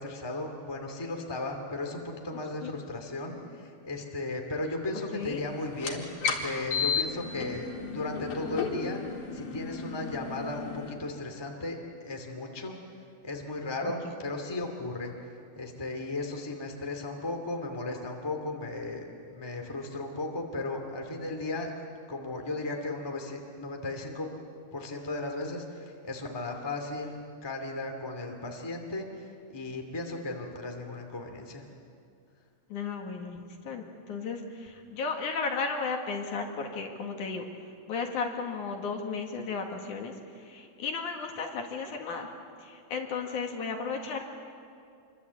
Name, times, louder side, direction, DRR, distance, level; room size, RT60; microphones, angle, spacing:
voice 1, 0.0-12.8 13.2-15.1 15.5-21.7 22.1-24.3 24.7-31.7, left 2 dB, 10° left, 3 dB, 2.0 m, -36 dB
sound 1, 5.7-10.9, left 6 dB, 80° left, 4.0 m, -33 dB
voice 2, 32.7-37.5 37.9-42.3 42.6-44.2, left 4 dB, 65° left, 2 dB, 3.2 m, -34 dB
26.5 x 23.0 x 8.4 m, 2.4 s
omnidirectional pair, 4.0 m